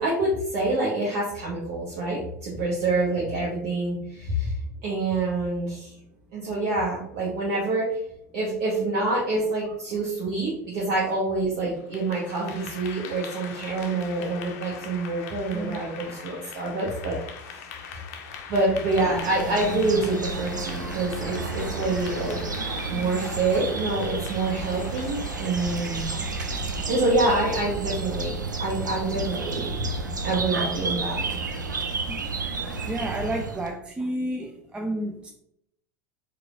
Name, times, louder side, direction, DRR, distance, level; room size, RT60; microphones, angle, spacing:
voice 1, 0.0-4.5 4.8-5.9 6.3-7.9 8.3-17.2 18.5-26.2 26.9-28.3 28.6-29.8 30.2-31.2, right 2 dB, 50° right, -6 dB, 1.0 m, -26 dB
Clapping / Applause, 11.7-27.0, left 7 dB, 55° left, 0.6 m, -42 dB
voice 2, 15.5-15.8 26.4-26.5 30.2-30.3 32.2-35.3, right 1 dB, 10° right, 1 dB, 0.3 m, -32 dB
sound 1, 18.9-33.7, right 3 dB, 85° right, 0.4 m, -31 dB
4.7 x 2.3 x 2.4 m, 0.74 s
figure-of-eight pair, 80°, 10 cm